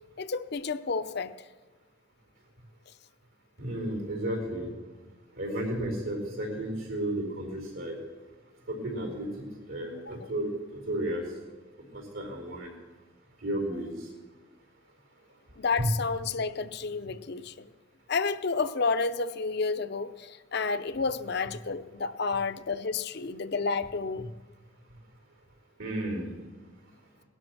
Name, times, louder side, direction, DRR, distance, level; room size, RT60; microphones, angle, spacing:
voice 1, 0.2-1.3 10.1-10.2 15.6-17.7 18.1-24.2, left 4 dB, 50° left, 0.6 m, -30 dB
voice 2, 3.6-4.7 5.4-8.0 8.7-9.3 9.7-10.5 10.9-11.2 11.9-12.7 13.4-14.0 15.8-15.9 25.8-26.3, right 1 dB, 75° right, 4.6 m, -32 dB
18.5 x 11.5 x 6.2 m
head